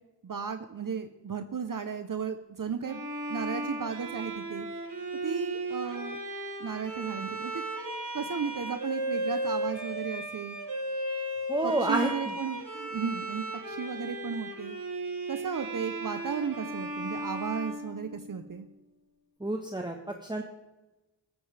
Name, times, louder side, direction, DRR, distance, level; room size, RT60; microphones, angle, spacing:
voice 1, 0.2-3.0 3.3-4.7 5.2-6.2 6.6-7.6 8.1-10.6 11.6-14.8 15.3-18.6, right 6 dB, 50° right, 8 dB, 0.9 m, -35 dB
Bowed string instrument, 2.8-18.6, right 1 dB, 70° right, 4.3 m, -35 dB
voice 2, 11.5-12.3 19.4-20.0 20.2-20.4, right 2 dB, 10° right, 3 dB, 1.3 m, -29 dB
15.0 x 13.5 x 3.4 m, 1.1 s
cardioid pair, 65°, 42 cm